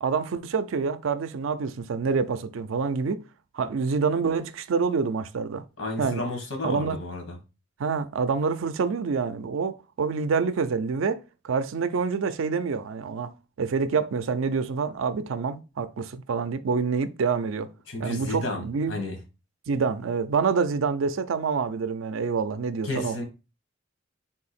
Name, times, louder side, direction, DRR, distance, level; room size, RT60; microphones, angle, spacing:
voice 1, 0.0-3.2 3.5-5.6 6.0-6.2 6.6-7.0 7.8-17.7 18.0-18.9 19.7-23.2, right 5 dB, 85° right, 0.4 m, -27 dB
voice 2, 5.8-7.4 17.9-19.2 22.8-23.2, left 2 dB, 90° left, 1.3 m, -32 dB
3.7 x 2.8 x 4.1 m
head